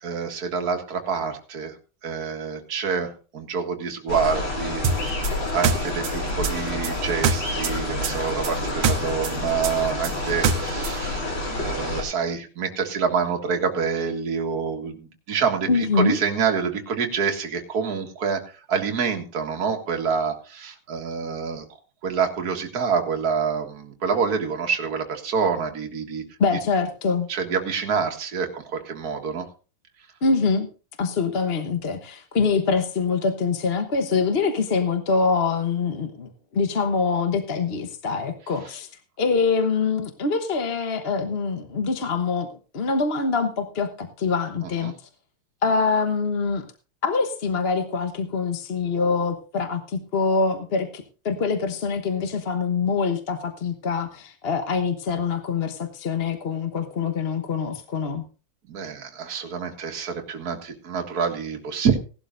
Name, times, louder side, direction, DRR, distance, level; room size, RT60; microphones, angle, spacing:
voice 1, 0.0-1.7 2.0-4.8 5.5-18.4 18.7-21.7 22.0-26.2 27.3-29.5 44.6-44.9 58.7-62.0, right 6 dB, 45° right, 3 dB, 2.1 m, -27 dB
sound 1, 4.1-12.0, left 1 dB, 60° left, 5.7 m, -28 dB
sound 2, 4.8-7.8 8.0-11.0, right 5 dB, 70° right, 1.8 m, -24 dB
voice 2, 15.7-16.2 26.4-27.3 30.2-30.7 31.0-38.9 39.2-44.9 45.6-46.6 47.0-58.2, left 4 dB, 40° left, 6 dB, 0.9 m, -24 dB
18.0 x 12.0 x 2.6 m, 0.36 s
omnidirectional pair, 2.4 m